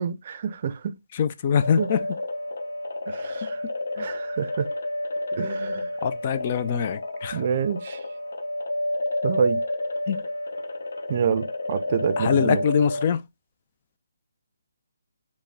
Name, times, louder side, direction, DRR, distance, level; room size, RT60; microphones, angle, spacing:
voice 1, 0.0-0.9 1.8-1.9 3.1-3.6 4.0-4.7 5.3-5.9 7.3-8.0 9.2-9.6 11.1-12.6, right 7 dB, 40° right, 0.5 m, -27 dB
voice 2, 1.1-2.1 3.6-4.1 6.0-7.4 10.1-10.3 12.2-13.3, left 7 dB, 35° left, 0.3 m, -24 dB
sound 1, 1.6-13.1, left 1 dB, 70° left, 0.7 m, -30 dB
5.1 x 2.1 x 3.4 m
figure-of-eight pair, 145°, 0 cm